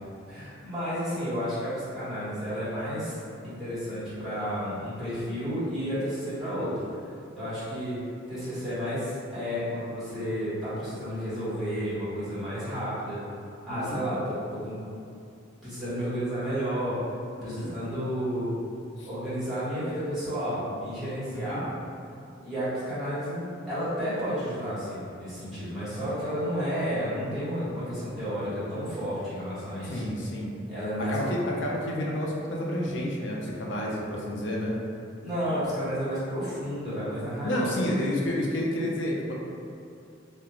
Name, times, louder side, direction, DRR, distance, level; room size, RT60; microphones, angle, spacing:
voice 1, 0.3-7.0 7.3-8.0 8.3-13.2 13.6-14.8 15.6-17.1 17.4-18.5 19.0-21.7 22.4-30.0 30.7-31.3 35.2-37.7, equal, ahead, -14 dB, 1.1 m, -31 dB
voice 2, 13.7-14.0 17.4-17.7 19.0-19.1 21.3-21.6 29.8-30.5 31.1-34.8 37.4-39.3, left 1 dB, 60° left, -3 dB, 0.5 m, -30 dB
2.3 x 2.2 x 2.9 m, 2.5 s
head